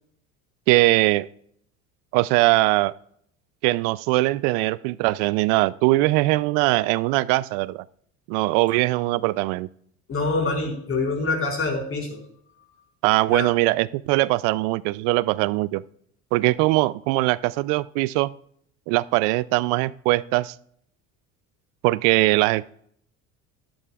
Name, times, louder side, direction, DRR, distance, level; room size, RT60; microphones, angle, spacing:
voice 1, 0.7-1.3 2.1-2.9 3.6-7.8 8.3-9.7 13.0-15.8 16.3-18.3 18.9-20.5 21.8-22.7, right 20 dB, 80° right, 19 dB, 0.5 m, -21 dB
voice 2, 10.1-12.2 13.3-13.5, left 3 dB, 40° left, 0 dB, 4.5 m, -25 dB
12.5 x 12.0 x 2.4 m, 0.67 s
supercardioid pair, 105°, 35 cm